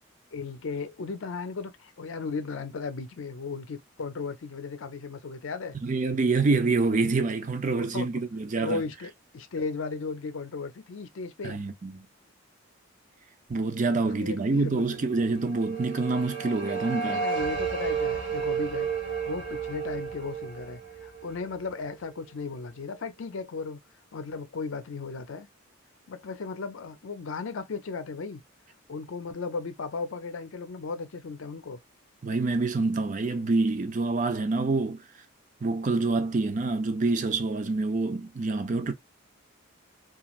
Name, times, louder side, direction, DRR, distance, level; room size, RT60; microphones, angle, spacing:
voice 1, 0.3-5.8 7.7-8.1 8.6-11.6 14.0-15.1 17.1-18.9 19.3-23.8 24.1-25.5 26.1-28.4 28.9-31.8, left 4 dB, 70° left, 0.5 m, -36 dB
voice 2, 5.8-8.8 11.4-12.1 13.5-17.2 32.2-35.0 35.6-38.9, right 3 dB, 35° right, 0.4 m, -26 dB
sound 1, 15.1-22.1, right 6 dB, 55° right, 0.8 m, -32 dB
3.0 x 2.4 x 2.3 m
head